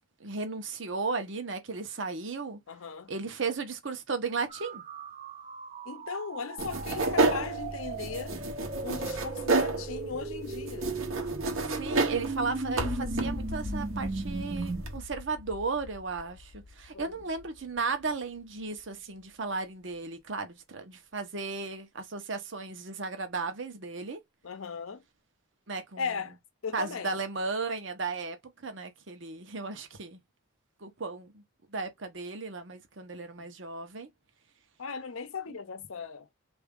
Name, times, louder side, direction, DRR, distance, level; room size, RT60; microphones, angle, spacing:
voice 1, 0.2-2.6 3.1-4.8 11.8-24.2 25.7-26.1 26.7-28.4 28.6-30.2 30.8-31.4 31.7-34.1, right 4 dB, 65° right, 0.9 m, -35 dB
voice 2, 2.7-3.1 5.9-8.4 8.8-10.9 11.6-11.7 16.9-17.2 24.4-25.0 26.0-26.4 26.6-27.1 33.4-33.5 34.8-36.3, left 5 dB, 85° left, 0.6 m, -37 dB
sound 1, 4.5-14.8, right 3 dB, 35° right, 0.4 m, -37 dB
sound 2, 6.6-15.0, right 3 dB, 85° right, 1.1 m, -31 dB
sound 3, 12.8-18.9, left 3 dB, 30° left, 0.3 m, -42 dB
3.5 x 2.7 x 3.6 m
head